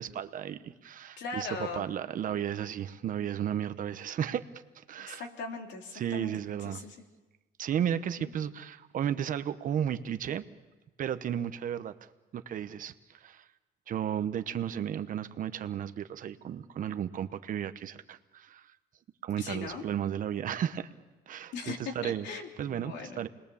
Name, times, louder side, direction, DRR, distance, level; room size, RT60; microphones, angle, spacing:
voice 1, 0.0-1.5 1.8-4.4 4.8-5.2 5.9-6.8 7.6-10.4 11.0-11.9 12.3-12.9 13.2-13.4 13.9-18.7 19.2-20.9 21.3-22.3 22.6-23.3, right 9 dB, 50° right, 10 dB, 1.0 m, -34 dB
voice 2, 1.2-1.8 5.0-7.0 8.2-8.3 19.4-19.8 21.5-23.2, left 4 dB, 85° left, 2 dB, 3.2 m, -40 dB
29.0 x 21.0 x 7.1 m, 1.2 s
cardioid pair, 165°, 18 cm